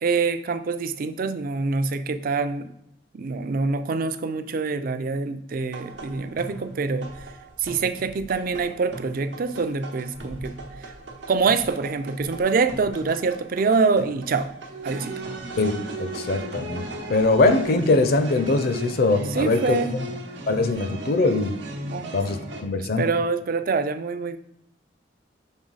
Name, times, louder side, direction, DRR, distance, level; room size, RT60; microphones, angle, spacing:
voice 1, 0.0-2.7 3.1-7.1 7.6-10.5 11.3-14.5 14.8-15.1 19.3-19.9 21.8-22.2 22.8-24.4, right 4 dB, 50° right, 10 dB, 0.4 m, -25 dB
sound 1, 5.7-22.6, right 2 dB, 90° right, 1.0 m, -37 dB
voice 2, 16.0-20.1 20.5-21.6 22.1-23.1, left 3 dB, 55° left, 9 dB, 0.5 m, -22 dB
6.3 x 3.8 x 4.0 m, 0.77 s
head